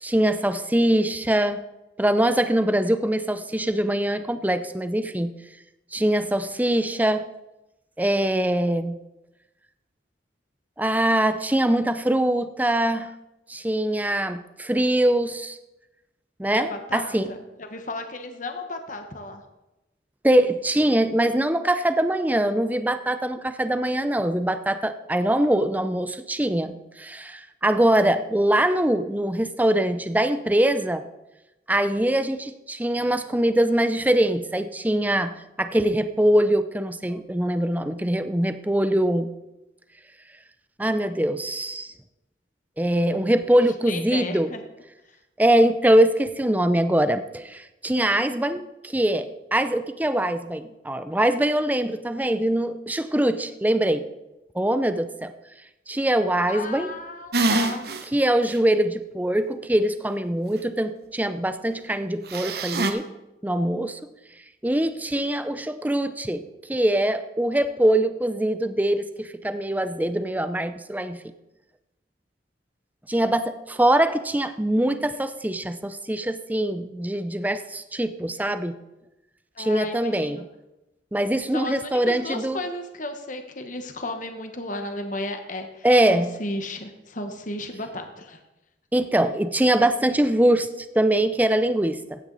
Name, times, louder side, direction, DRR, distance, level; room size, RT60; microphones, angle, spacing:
voice 1, 0.0-1.6 2.0-5.3 5.9-7.2 8.0-9.0 10.8-13.1 13.5-15.6 16.4-17.3 20.2-31.0 31.7-39.3 40.8-41.9 42.8-44.5 45.4-54.1 54.5-55.3 55.9-56.9 58.1-63.1 63.4-64.0 64.6-71.2 73.1-78.7 79.6-80.4 81.1-82.6 85.8-86.4 88.9-92.2, right 1 dB, 10° right, 10 dB, 0.6 m, -23 dB
voice 2, 16.5-19.4 43.9-44.6 56.5-58.0 79.5-80.4 81.5-88.4, left 2 dB, 45° left, 6 dB, 1.3 m, -34 dB
sound 1, 57.3-58.0 58.5-58.6 62.3-62.9, right 2 dB, 60° right, 1.0 m, -24 dB
15.5 x 9.4 x 4.1 m, 0.97 s
head